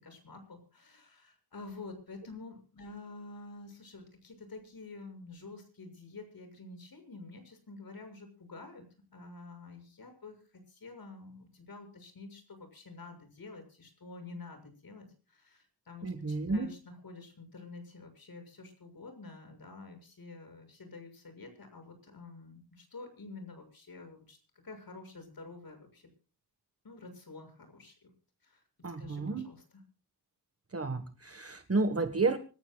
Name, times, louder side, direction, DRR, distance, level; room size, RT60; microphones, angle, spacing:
voice 1, 0.0-8.8 9.1-10.4 10.7-24.4 24.6-26.1 26.8-28.1 28.4-28.6 29.0-29.6, left 3 dB, 60° left, 7 dB, 7.0 m, -49 dB
voice 2, 16.0-16.7 28.8-29.5 30.7-32.4, right 3 dB, 35° right, 7 dB, 1.6 m, -31 dB
25.5 x 15.0 x 2.4 m, 0.37 s
wide cardioid pair, 105°, 39 cm